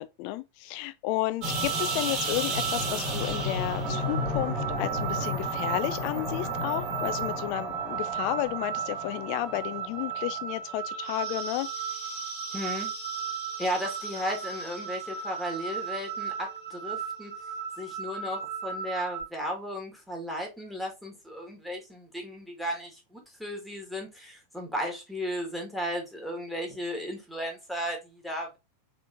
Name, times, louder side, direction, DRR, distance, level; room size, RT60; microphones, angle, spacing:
voice 1, 0.0-12.3, left 16 dB, 45° left, 0.4 m, -32 dB
sound 1, 1.4-19.2, right 3 dB, 40° right, 1.8 m, -33 dB
voice 2, 12.5-12.9 13.6-17.3 17.8-28.6, equal, ahead, 1.6 m, -35 dB
3.6 x 3.6 x 2.5 m
figure-of-eight pair, 90°, 0 cm